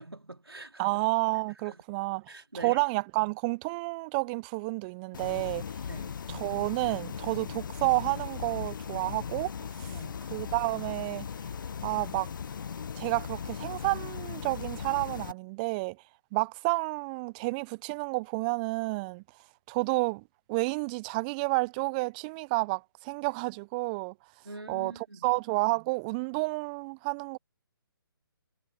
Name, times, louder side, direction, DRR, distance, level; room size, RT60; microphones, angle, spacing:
voice 1, 0.0-1.0 1.7-1.8 2.3-2.8 5.9-6.3 9.9-10.3 24.4-25.4, right 2 dB, 90° right, 2.7 m, -44 dB
voice 2, 0.8-5.6 6.3-9.9 10.3-11.3 11.8-12.3 13.0-16.0 16.3-19.2 19.7-24.1 24.7-27.4, right 27 dB, 20° right, 0.8 m, -30 dB
sound 1, 5.1-15.3, left 7 dB, 55° left, 0.4 m, -38 dB
figure-of-eight pair, 140°, 12 cm